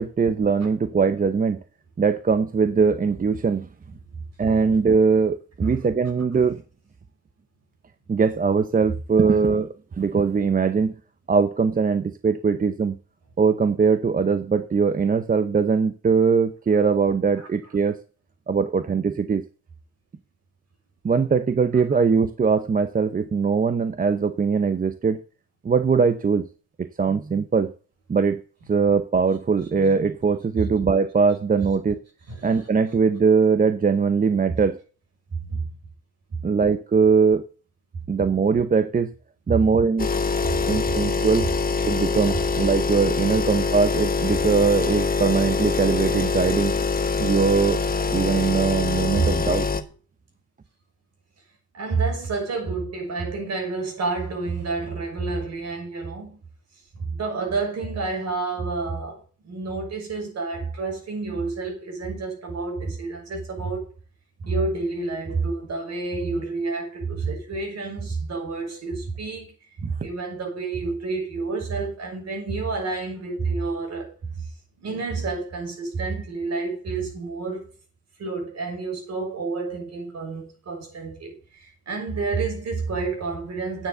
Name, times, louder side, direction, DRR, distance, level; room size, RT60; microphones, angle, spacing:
voice 1, 0.0-1.6 2.0-3.7 4.4-6.6 8.1-9.7 10.0-10.9 11.3-13.0 13.4-18.0 18.5-19.4 21.0-25.2 25.6-26.5 26.8-27.7 28.1-28.4 28.7-32.0 32.4-34.8 36.4-37.4 38.1-39.1 39.5-40.1 40.7-41.5 41.8-46.8 47.2-47.8 48.1-49.7 69.8-69.9, right 5 dB, 30° right, 0.8 m, -21 dB
voice 2, 35.3-35.7 36.3-36.4 49.1-49.3 51.7-56.4 56.9-63.9 64.4-74.5 74.8-77.7 78.2-83.9, right 4 dB, 60° right, 6.2 m, -29 dB
sound 1, 40.0-49.8, left 4 dB, 30° left, 1.2 m, -24 dB
9.3 x 7.2 x 7.8 m
cardioid pair, 90°, 30 cm